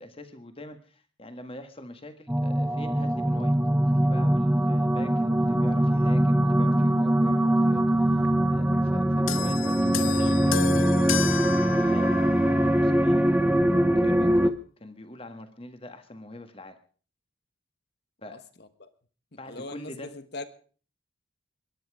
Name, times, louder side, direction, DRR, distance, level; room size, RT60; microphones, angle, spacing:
voice 1, 0.0-3.5 3.8-11.3 11.6-13.2 13.9-14.5 14.8-16.8 18.2-18.4 19.4-20.1, left 1 dB, 30° left, 9 dB, 1.6 m, -43 dB
sound 1, 2.3-14.5, right 1 dB, 5° right, 0.6 m, -22 dB
sound 2, 9.3-12.9 13.8-13.9, left 8 dB, 80° left, 0.6 m, -32 dB
voice 2, 19.4-20.4, left 2 dB, 55° left, 12 dB, 1.3 m, -40 dB
22.5 x 10.5 x 4.9 m, 0.42 s
head